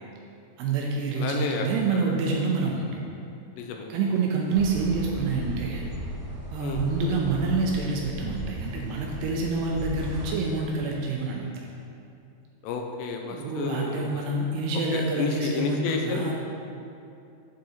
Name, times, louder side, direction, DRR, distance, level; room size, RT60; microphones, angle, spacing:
voice 1, 0.6-2.9 3.9-5.8 6.5-11.7 13.2-16.3, right 3 dB, 80° right, -1 dB, 2.5 m, -27 dB
voice 2, 1.2-1.7 3.6-3.9 6.6-6.8 12.6-14.1 14.9-16.3, left 5 dB, 80° left, 2 dB, 2.7 m, -31 dB
sound 1, 4.5-10.3, right 1 dB, 55° right, 2.4 m, -36 dB
8.2 x 6.5 x 4.2 m, 2.6 s
omnidirectional pair, 5.2 m